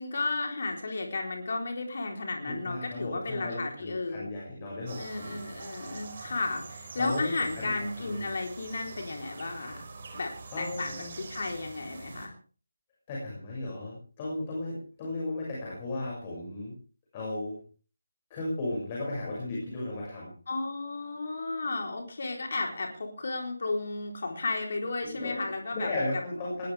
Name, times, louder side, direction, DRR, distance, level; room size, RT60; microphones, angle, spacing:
voice 1, 0.0-4.3 5.0-9.8 10.1-12.3 20.5-25.9, left 3 dB, 50° left, 2 dB, 3.8 m, -33 dB
voice 2, 2.5-5.4 7.0-7.7 8.1-8.3 10.1-10.2 10.5-11.1 13.1-16.7 17.1-17.6 18.3-20.3 25.0-26.7, left 2 dB, 20° left, -4 dB, 6.5 m, -35 dB
sound 1, 4.9-12.3, right 4 dB, 40° right, 4.8 m, -45 dB
20.0 x 19.5 x 3.5 m, 0.40 s
figure-of-eight pair, 155°, 0 cm